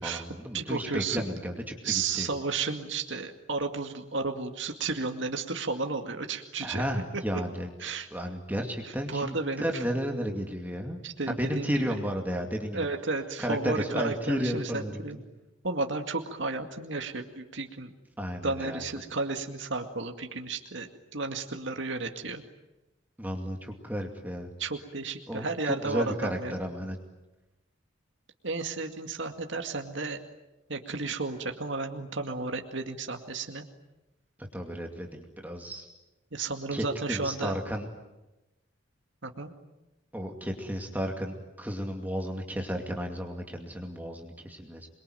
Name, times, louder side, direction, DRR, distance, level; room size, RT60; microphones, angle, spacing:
voice 1, 0.0-2.3 6.6-7.7 8.1-11.0 11.3-12.9 13.4-15.2 18.2-18.8 23.2-24.5 25.3-27.0 34.5-35.9 36.7-37.9 40.1-44.9, equal, 10° right, 2 dB, 2.4 m, -33 dB
voice 2, 0.5-1.3 1.8-6.8 7.8-8.1 8.8-9.8 11.0-11.7 12.7-15.2 15.6-17.9 18.4-22.4 24.6-26.6 28.4-30.2 30.7-33.6 36.3-37.5 39.2-39.5, right 3 dB, 65° right, 4 dB, 2.2 m, -33 dB
28.0 x 23.0 x 9.3 m, 1.0 s
head